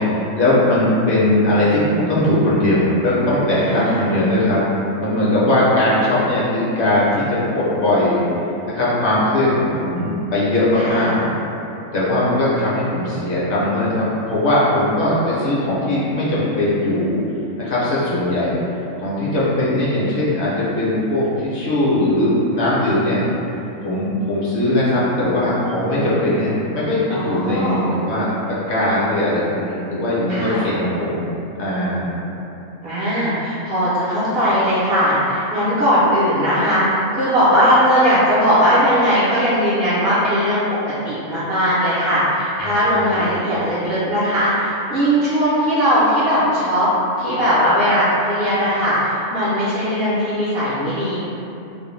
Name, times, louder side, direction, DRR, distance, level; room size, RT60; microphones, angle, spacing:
voice 1, 0.0-4.6 5.0-8.3 8.7-11.2 11.9-17.2 17.6-18.5 19.0-23.2 23.8-28.3 28.7-31.2 31.6-32.1 42.6-43.2, left 1 dB, 60° left, -8 dB, 0.8 m, -19 dB
voice 2, 3.6-4.1 10.8-11.2 27.1-27.8 30.3-30.6 32.8-40.6 41.0-46.9 47.2-51.2, equal, 60° right, -10 dB, 0.6 m, -18 dB
2.5 x 2.1 x 3.0 m, 2.8 s
omnidirectional pair, 1.4 m